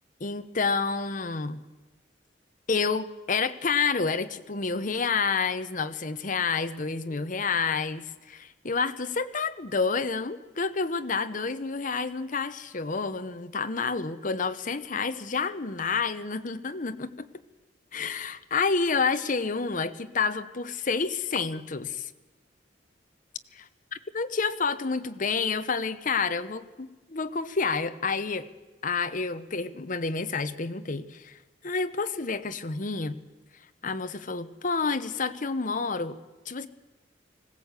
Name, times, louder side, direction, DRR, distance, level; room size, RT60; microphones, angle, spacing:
voice 1, 0.2-1.6 2.7-17.3 17.9-22.1 23.5-23.6 24.1-28.5 28.8-31.4 31.6-33.2 33.8-36.2 36.5-36.7, left 4 dB, 45° left, 10 dB, 0.9 m, -29 dB
20.0 x 16.5 x 8.2 m, 1.2 s
head